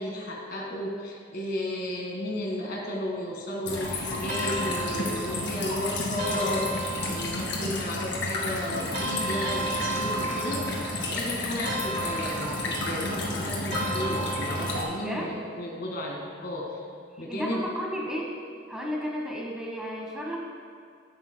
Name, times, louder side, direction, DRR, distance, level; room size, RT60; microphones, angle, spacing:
voice 1, 0.0-16.8 17.2-17.6, left 1 dB, 50° left, -1 dB, 1.9 m, -33 dB
sound 1, 3.6-14.8, left 2 dB, 65° left, 2.2 m, -31 dB
sound 2, 4.3-5.6 6.2-7.5 8.9-11.1 11.7-13.0 13.7-15.0, right 2 dB, 50° right, 1.5 m, -34 dB
voice 2, 15.0-15.3 17.3-18.3 18.7-20.4, equal, 5° right, -2 dB, 1.3 m, -33 dB
17.0 x 9.2 x 2.3 m, 2.3 s
head